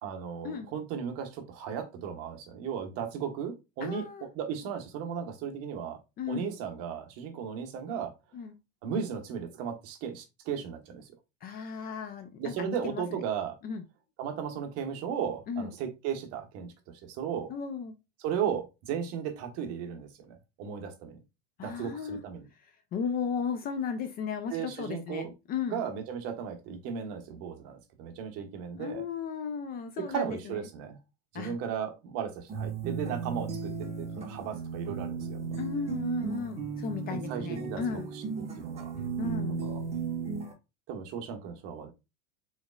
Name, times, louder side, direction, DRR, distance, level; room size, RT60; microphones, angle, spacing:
voice 1, 0.0-4.1 4.3-6.0 6.3-8.1 8.8-11.1 12.4-13.6 14.2-16.7 17.0-17.5 18.2-21.2 21.6-22.5 24.5-25.3 25.7-29.0 30.1-31.0 31.3-33.7 34.0-35.4 37.1-37.8 38.1-38.2 38.6-38.9 39.6-39.8 40.9-41.9, right 7 dB, 45° right, 1.2 m, -35 dB
voice 2, 3.8-4.3 6.2-6.5 8.3-8.5 11.4-13.0 13.6-13.8 15.5-15.7 17.5-17.9 21.6-22.2 22.9-25.8 28.8-30.6 31.3-31.6 35.6-38.1 39.2-39.7, left 6 dB, 25° left, 0.5 m, -35 dB
sound 1, 32.5-40.5, right 5 dB, 20° right, 1.1 m, -35 dB
4.9 x 4.1 x 2.3 m
supercardioid pair, 145°, 35 cm